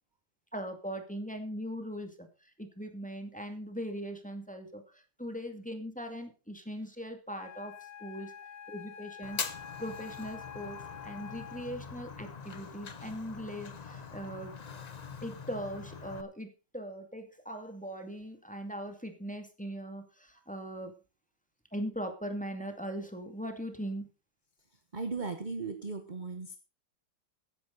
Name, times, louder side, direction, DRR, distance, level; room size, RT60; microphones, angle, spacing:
voice 1, 0.5-8.3 8.7-9.4 9.8-14.5 15.2-21.0 21.7-24.1, equal, 5° left, 5 dB, 2.1 m, -40 dB
Wind instrument woodwind instrument, 7.3-11.9, left 8 dB, 60° left, 1.5 m, -47 dB
Fire, 9.2-16.2, left 5 dB, 40° left, 0.6 m, -43 dB
voice 2, 24.9-26.6, right 4 dB, 30° right, 8 dB, 1.0 m, -37 dB
15.5 x 10.0 x 4.0 m, 0.32 s
omnidirectional pair, 2.0 m